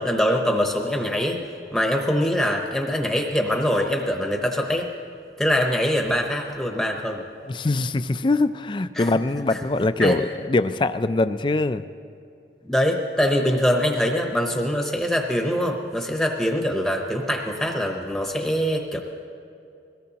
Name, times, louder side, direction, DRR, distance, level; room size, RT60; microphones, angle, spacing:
voice 1, 0.0-1.4 1.7-4.9 5.4-7.2 9.0-9.1 9.5-9.6 10.0-10.2 12.7-19.0, equal, ahead, 1 dB, 0.9 m, -23 dB
voice 2, 7.5-11.8, left 2 dB, 25° left, 12 dB, 0.4 m, -23 dB
21.5 x 17.5 x 2.9 m, 2.6 s
head